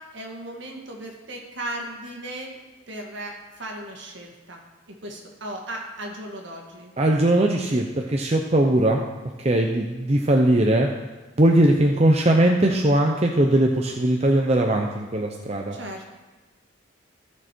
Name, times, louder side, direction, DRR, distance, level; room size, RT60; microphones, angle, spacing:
voice 1, 0.0-2.6 2.9-4.6 4.9-6.9 15.7-16.0, right 1 dB, 65° right, 1 dB, 1.8 m, -36 dB
voice 2, 7.0-9.0 9.4-10.9 11.4-15.8, right 1 dB, 30° right, 2 dB, 0.6 m, -20 dB
13.5 x 6.5 x 4.5 m, 1.3 s
head